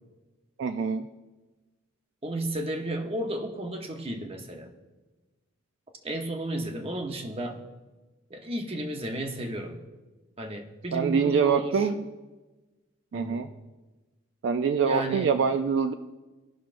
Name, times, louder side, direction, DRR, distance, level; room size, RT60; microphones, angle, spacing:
voice 1, 0.6-1.1 10.9-12.1 13.1-13.5 14.4-15.9, right 6 dB, 60° right, 8 dB, 0.3 m, -25 dB
voice 2, 2.2-4.7 6.0-7.6 8.3-9.8 10.4-11.9 13.1-13.4 14.8-15.4, right 1 dB, 30° right, 4 dB, 0.8 m, -33 dB
17.0 x 5.9 x 2.5 m, 1.2 s
head